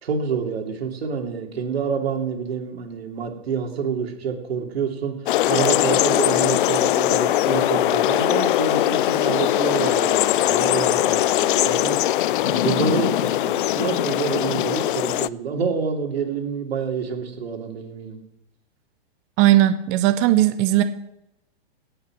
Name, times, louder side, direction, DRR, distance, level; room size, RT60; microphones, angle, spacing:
voice 1, 0.0-5.2 5.5-12.0 12.4-18.2, right 6 dB, 80° right, 3 dB, 2.8 m, -27 dB
sound 1, 5.3-15.3, left 14 dB, 55° left, 0.4 m, -21 dB
voice 2, 19.4-20.8, right 14 dB, 20° right, 11 dB, 0.4 m, -17 dB
17.0 x 5.8 x 6.0 m, 0.89 s
hypercardioid pair, 145°, 31 cm